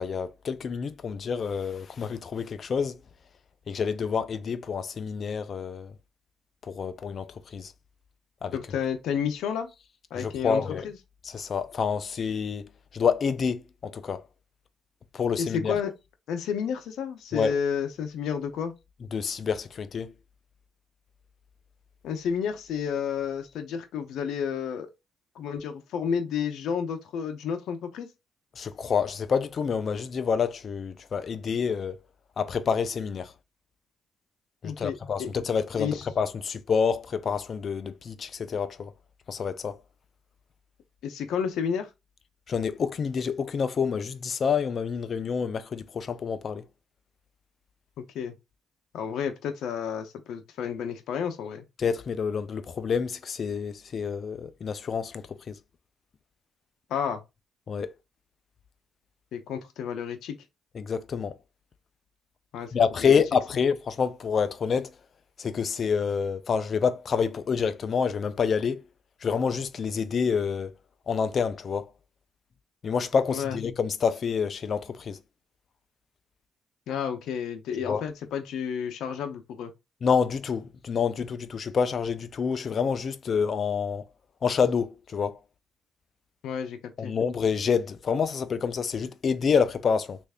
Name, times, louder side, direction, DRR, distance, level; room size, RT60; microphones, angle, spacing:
voice 1, 0.0-3.0 3.7-5.9 6.7-7.7 8.4-8.6 10.1-10.9 11.2-14.2 15.1-15.8 17.3-17.5 19.1-20.1 28.6-32.0 32.4-33.3 34.6-38.9 39.3-39.8 42.5-46.7 51.8-55.6 57.7-57.9 60.7-61.3 62.7-64.9 65.4-68.8 69.2-70.7 71.1-71.9 72.8-75.2 77.9-78.0 80.0-84.1 84.4-85.4 87.0-90.2, left 6 dB, 50° left, 0.5 m, -28 dB
voice 2, 8.5-9.7 10.1-11.0 15.4-15.9 16.3-18.7 22.0-24.9 25.4-28.1 34.6-35.3 35.8-36.1 41.0-41.9 48.0-48.3 48.9-51.7 56.9-57.2 59.3-60.4 62.5-63.2 73.3-73.6 76.9-79.7 86.4-87.2, left 7 dB, 80° left, 0.7 m, -31 dB
3.2 x 2.6 x 3.5 m
cardioid pair, 90°, 0 cm